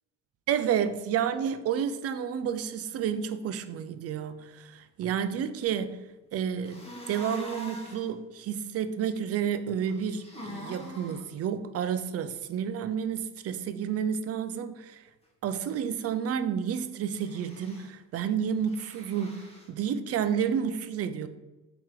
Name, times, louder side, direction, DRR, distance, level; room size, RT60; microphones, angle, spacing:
voice 1, 0.5-15.0 15.4-21.3, right 8 dB, 55° right, 0.4 m, -30 dB
sound 1, 6.6-8.1 9.8-11.2 17.1-17.9 18.6-19.7, equal, 20° left, 1.1 m, -44 dB
4.3 x 3.0 x 3.7 m
cardioid pair, 90°, 30 cm